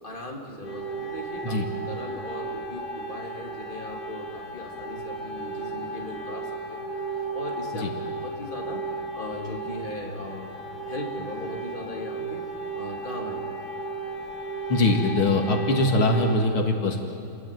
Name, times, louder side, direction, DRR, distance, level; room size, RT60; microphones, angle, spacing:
voice 1, 0.0-1.6 1.9-6.9 7.3-8.8 9.1-10.5 10.9-12.4 12.7-13.6, left 1 dB, 20° left, 0 dB, 3.4 m, -38 dB
sound 1, 0.6-16.3, right 3 dB, 50° left, 4.0 m, -34 dB
voice 2, 14.7-17.0, left 2 dB, 75° left, 3 dB, 2.9 m, -22 dB
29.5 x 21.5 x 9.4 m, 2.9 s
omnidirectional pair, 2.4 m